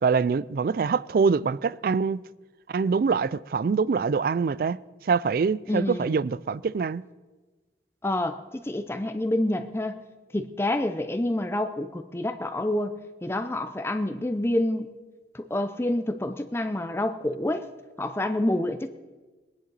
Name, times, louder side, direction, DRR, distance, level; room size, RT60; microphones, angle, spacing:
voice 1, 0.0-2.2 2.7-7.0, right 5 dB, 55° right, 0.3 m, -24 dB
voice 2, 5.7-6.2 8.0-10.0 10.3-12.9 13.2-14.9 15.3-17.6 18.0-18.9, left 1 dB, 15° left, 0.6 m, -28 dB
21.5 x 10.5 x 4.0 m
head